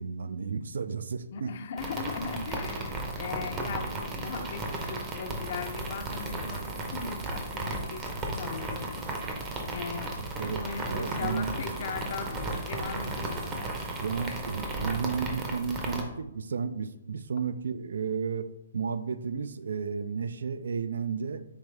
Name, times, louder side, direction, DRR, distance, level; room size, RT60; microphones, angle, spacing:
voice 1, 0.0-1.5 10.2-10.6 10.9-11.5 14.0-21.4, right 6 dB, 80° right, 12 dB, 0.3 m, -33 dB
voice 2, 1.3-9.1 9.7-10.2 10.5-13.5, left 5 dB, 50° left, 7 dB, 0.5 m, -38 dB
sound 1, 1.8-16.0, right 2 dB, 20° right, 0.7 m, -35 dB
5.0 x 3.0 x 3.3 m, 0.84 s
hypercardioid pair, 150°, 0 cm